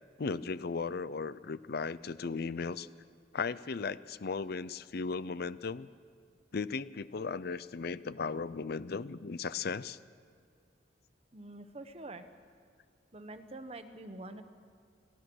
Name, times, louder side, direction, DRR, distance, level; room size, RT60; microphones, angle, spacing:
voice 1, 0.2-2.9 3.3-5.9 6.5-10.0, left 4 dB, 55° left, 16 dB, 0.6 m, -36 dB
voice 2, 11.3-12.3 13.1-14.4, right 2 dB, 35° right, 9 dB, 1.2 m, -46 dB
28.5 x 17.5 x 6.3 m, 2.2 s
head